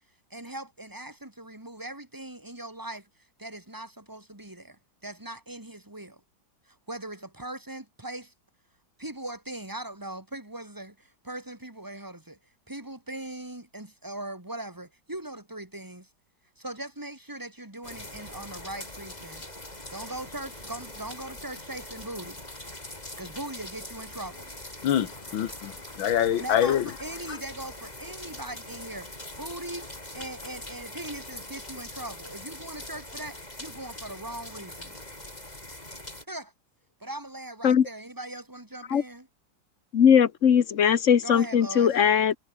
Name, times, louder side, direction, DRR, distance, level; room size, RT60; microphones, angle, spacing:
voice 1, 0.3-3.1 3.4-6.2 6.7-8.3 9.0-12.4 12.7-16.1 16.6-19.5 19.9-22.4 23.2-24.5 26.4-29.1 29.4-35.0 36.3-36.5 37.0-39.3 41.2-42.0, right 1 dB, 10° right, 3.5 m, -40 dB
sound 1, 17.8-36.2, left 1 dB, 20° left, 5.1 m, -42 dB
voice 2, 24.8-26.9 27.3-27.4, left 10 dB, 85° left, 2.0 m, -26 dB
voice 3, 39.9-42.3, left 8 dB, 45° left, 1.3 m, -20 dB
omnidirectional pair, 2.1 m